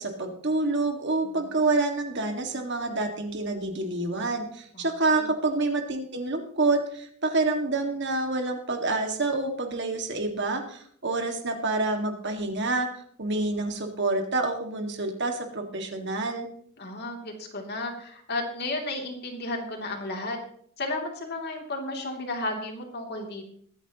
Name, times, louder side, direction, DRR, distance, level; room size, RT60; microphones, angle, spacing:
voice 1, 0.0-16.5, right 2 dB, 55° right, 4 dB, 2.0 m, -28 dB
voice 2, 1.2-1.5 4.7-4.9 5.1-5.3 16.8-20.4 20.8-23.5, left 2 dB, 50° left, 2 dB, 2.9 m, -33 dB
22.5 x 9.5 x 3.0 m, 0.62 s
head